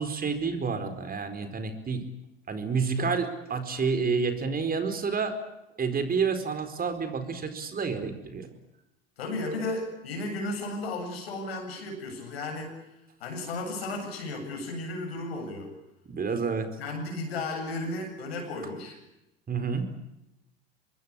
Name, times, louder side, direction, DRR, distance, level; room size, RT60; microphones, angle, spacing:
voice 1, 0.0-2.0 2.5-5.4 5.8-8.5 16.1-16.7 19.5-19.9, right 5 dB, 30° right, 8 dB, 4.6 m, -29 dB
voice 2, 9.2-12.7 13.2-15.7 16.8-19.0, left 2 dB, 85° left, 4 dB, 8.0 m, -34 dB
25.5 x 22.0 x 8.6 m, 0.91 s
hypercardioid pair, 80°, 30 cm